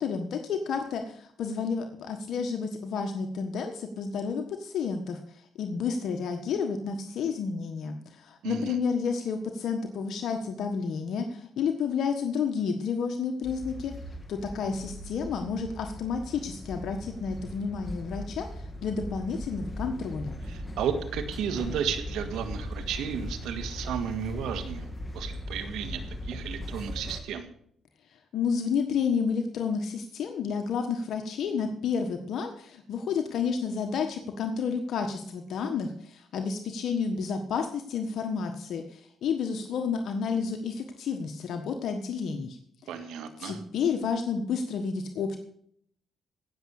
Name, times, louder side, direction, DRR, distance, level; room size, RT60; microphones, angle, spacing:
voice 1, 0.0-13.9 14.3-20.4 28.3-42.6 43.4-45.4, left 6 dB, 70° left, 5 dB, 1.5 m, -30 dB
voice 2, 8.4-8.8 20.5-27.5 42.9-43.6, right 8 dB, 85° right, 8 dB, 1.8 m, -33 dB
sound 1, 13.4-27.2, left 1 dB, 20° left, 2.3 m, -39 dB
17.0 x 7.1 x 6.6 m, 0.65 s
cardioid pair, 90°, 0 cm